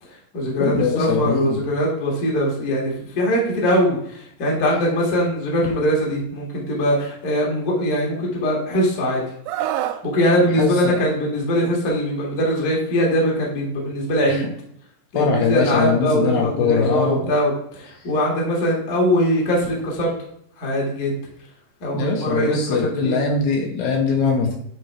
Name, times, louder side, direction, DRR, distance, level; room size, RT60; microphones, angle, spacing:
voice 1, 0.0-9.2 10.0-14.4 15.1-20.1 20.6-21.2 21.8-23.2, equal, 50° left, -3 dB, 1.1 m, -21 dB
voice 2, 0.6-1.6 10.6-10.9 15.1-17.3 21.9-24.5, left 5 dB, 75° left, 1 dB, 2.6 m, -21 dB
Screaming, 9.5-10.0 11.5-11.7, right 12 dB, 85° right, 2.5 m, -26 dB
9.1 x 4.2 x 3.4 m, 0.69 s
omnidirectional pair, 5.2 m